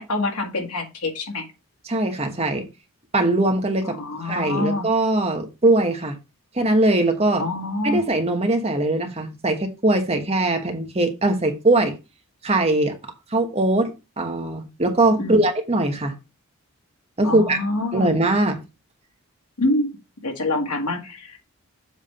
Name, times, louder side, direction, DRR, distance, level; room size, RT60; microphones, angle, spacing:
voice 1, 0.0-1.5 3.8-4.9 7.4-8.0 15.1-15.4 17.2-18.2 19.6-19.9 20.2-21.4, left 2 dB, 90° left, 1.9 m, -26 dB
voice 2, 1.8-2.7 3.1-6.2 6.5-7.5 7.8-12.0 12.4-13.0 13.3-16.2 17.2-17.6 17.9-18.6, right 2 dB, 30° right, 1.2 m, -21 dB
7.3 x 3.5 x 5.5 m
head